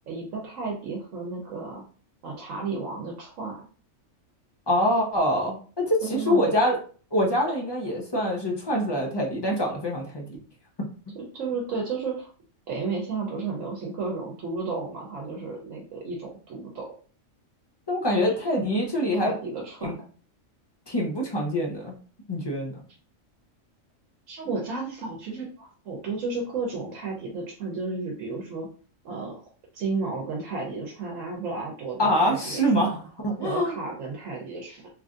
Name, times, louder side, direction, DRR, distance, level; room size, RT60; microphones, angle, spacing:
voice 1, 0.1-1.8 2.2-3.6 6.0-6.5 11.1-12.3 12.7-16.9 18.1-18.3 19.1-19.9 24.3-28.7 29.0-29.4 29.7-32.9 33.4-34.9, right 4 dB, 80° right, -1 dB, 1.1 m, -33 dB
voice 2, 4.7-6.8 7.1-10.2 17.9-19.3 19.8-20.0 20.9-21.9 22.3-22.8 32.0-33.7, equal, 30° left, -1 dB, 0.4 m, -25 dB
3.1 x 2.5 x 2.4 m, 0.41 s
omnidirectional pair, 1.3 m